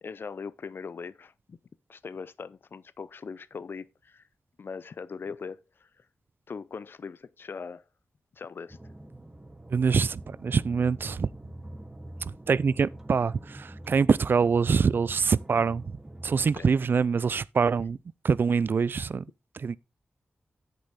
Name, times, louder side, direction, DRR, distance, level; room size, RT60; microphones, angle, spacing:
voice 1, 0.0-1.6 1.9-4.2 4.6-6.0 6.5-7.8 8.3-8.8 11.5-11.6 16.6-16.7, left 5 dB, 65° left, 0.5 m, -40 dB
sound 1, 8.7-16.6, right 1 dB, 15° right, 1.2 m, -45 dB
voice 2, 9.7-11.3 12.2-15.8 16.2-18.0 18.2-19.2 19.6-19.8, right 5 dB, 60° right, 0.3 m, -25 dB
8.0 x 6.8 x 4.1 m
wide cardioid pair, 85°, 4 cm